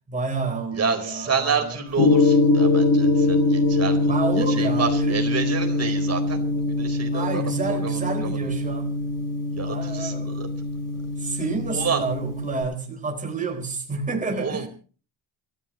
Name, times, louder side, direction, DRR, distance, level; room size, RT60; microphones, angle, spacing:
voice 1, 0.1-1.8 4.1-5.2 7.1-8.9 9.6-10.4 11.2-14.7, right 3 dB, 15° right, 4.1 m, -29 dB
voice 2, 0.7-7.4 7.7-8.4 9.5-10.5 11.7-12.0 14.3-14.7, right 5 dB, 30° right, 4.3 m, -29 dB
Gong, 2.0-12.6, left 2 dB, 50° left, 7.1 m, -23 dB
29.0 x 14.5 x 3.1 m
cardioid pair, 150°, 48 cm